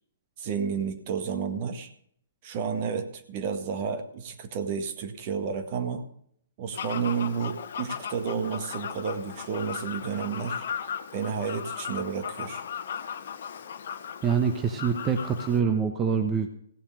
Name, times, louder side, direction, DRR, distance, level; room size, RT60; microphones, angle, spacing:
voice 1, 0.4-1.9 2.4-6.1 6.6-12.6, right 6 dB, 45° right, 8 dB, 1.7 m, -31 dB
Fowl, 6.7-15.6, left 8 dB, 60° left, 1.1 m, -37 dB
voice 2, 14.2-16.6, right 6 dB, 20° right, 6 dB, 1.2 m, -25 dB
16.0 x 7.2 x 6.5 m, 0.65 s
figure-of-eight pair, 125°, 0 cm